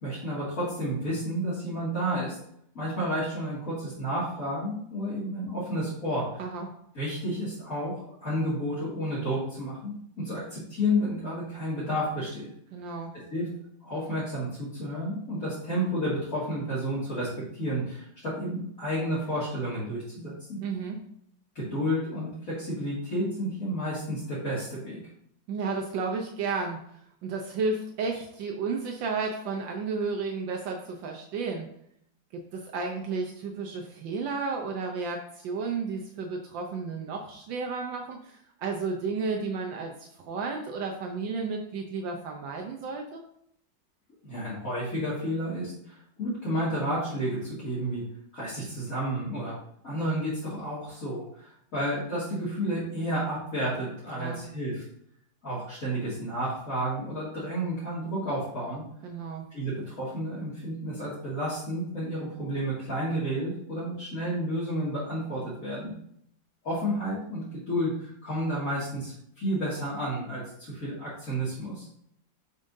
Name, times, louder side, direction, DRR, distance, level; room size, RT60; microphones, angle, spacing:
voice 1, 0.0-2.4 2.7-6.2 6.9-12.5 13.3-13.5 13.8-20.6 21.5-25.0 44.2-48.0 48.3-49.5 49.8-54.8 55.4-58.8 59.5-65.9 66.6-71.9, equal, 45° left, -10 dB, 2.6 m, -31 dB
voice 2, 6.4-6.7 12.7-13.1 20.6-21.0 25.5-26.8 27.2-31.7 32.3-43.2 54.2-54.5 59.0-59.5, right 4 dB, 80° right, 2 dB, 1.5 m, -32 dB
10.0 x 5.3 x 2.7 m, 0.70 s
omnidirectional pair, 2.0 m